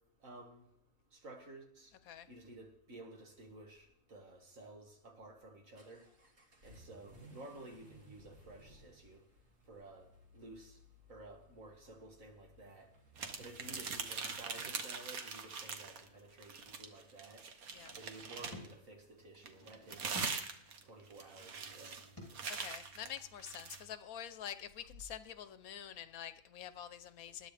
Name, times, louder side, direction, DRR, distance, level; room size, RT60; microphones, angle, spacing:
voice 1, 0.2-0.7 1.1-1.9 2.3-6.0 6.6-9.2 9.7-10.1 10.3-10.8 11.1-12.9 13.4-17.4 18.0-20.4 20.9-22.0, right 2 dB, 70° right, 2.3 m, -53 dB
Vehicle / Accelerating revving vroom, 5.2-25.0, equal, 50° right, 2.5 m, -64 dB
sound 1, 13.2-16.1 16.4-18.7 19.4-23.8, right 5 dB, 85° right, 1.5 m, -42 dB
sound 2, 15.4-16.8 17.5-18.9 19.3-20.6 21.1-22.2, left 1 dB, 15° left, 3.3 m, -55 dB
voice 2, 22.5-27.5, left 9 dB, 85° left, 1.2 m, -47 dB
19.5 x 11.0 x 3.4 m
omnidirectional pair, 1.5 m